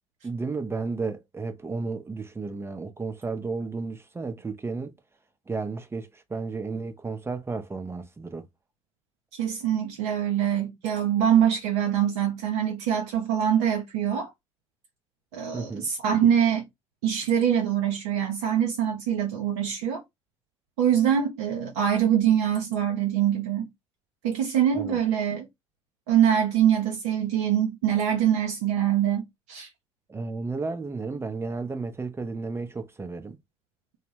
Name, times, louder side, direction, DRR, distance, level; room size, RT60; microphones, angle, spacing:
voice 1, 0.2-4.9 5.5-8.5 15.5-15.9 24.7-25.0 30.1-33.4, right 4 dB, 15° right, 0.5 m, -33 dB
voice 2, 9.3-14.3 15.3-16.7 17.0-20.0 20.8-23.7 24.2-25.5 26.1-29.7, right 9 dB, 70° right, 0.5 m, -24 dB
2.1 x 2.0 x 3.1 m
hypercardioid pair, 60°, 16 cm